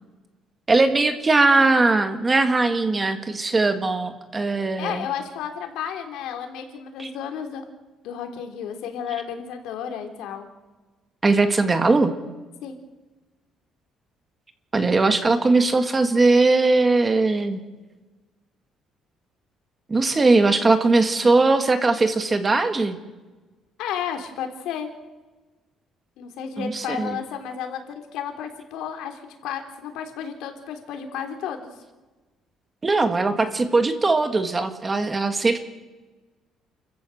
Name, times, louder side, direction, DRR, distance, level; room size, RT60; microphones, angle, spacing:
voice 1, 0.7-5.0 7.0-7.1 11.2-12.1 14.7-17.6 19.9-23.0 26.6-27.2 32.8-35.6, right 3 dB, 15° right, 8 dB, 1.6 m, -20 dB
voice 2, 4.8-7.6 8.0-10.5 12.6-12.8 23.8-24.9 26.2-31.7, left 8 dB, 80° left, 5 dB, 3.5 m, -32 dB
29.0 x 15.0 x 7.8 m, 1.2 s
cardioid pair, 175°, 0 cm